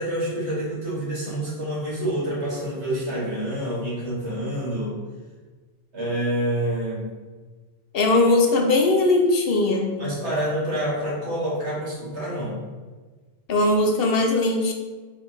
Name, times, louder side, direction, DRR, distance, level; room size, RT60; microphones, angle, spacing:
voice 1, 0.0-5.0 5.9-7.1 10.0-12.6, right 1 dB, 90° right, -6 dB, 1.9 m, -27 dB
voice 2, 7.9-9.9 13.5-14.7, left 2 dB, 65° left, 2 dB, 0.8 m, -19 dB
4.4 x 3.3 x 3.1 m, 1.4 s
omnidirectional pair, 1.1 m